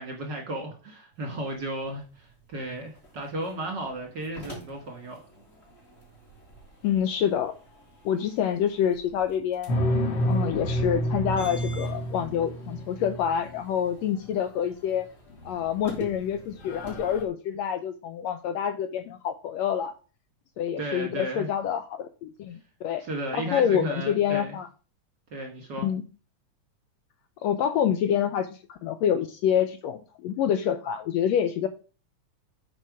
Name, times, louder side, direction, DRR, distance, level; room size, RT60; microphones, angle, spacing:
voice 1, 0.0-5.2 20.8-21.5 23.0-24.5 25.3-25.9, right 1 dB, 45° right, 1.6 m, -34 dB
sound 1, 1.1-17.3, right 1 dB, 20° left, 3.0 m, -48 dB
voice 2, 6.8-7.5 8.0-9.8 10.2-15.1 15.4-19.9 20.6-23.0 23.4-24.7 25.8-26.0 27.4-31.7, left 9 dB, 80° left, 1.6 m, -27 dB
sound 2, 9.7-13.6 15.4-15.9 16.2-16.3 16.6-17.2, equal, 60° left, 1.2 m, -29 dB
8.7 x 5.4 x 4.8 m
omnidirectional pair, 3.5 m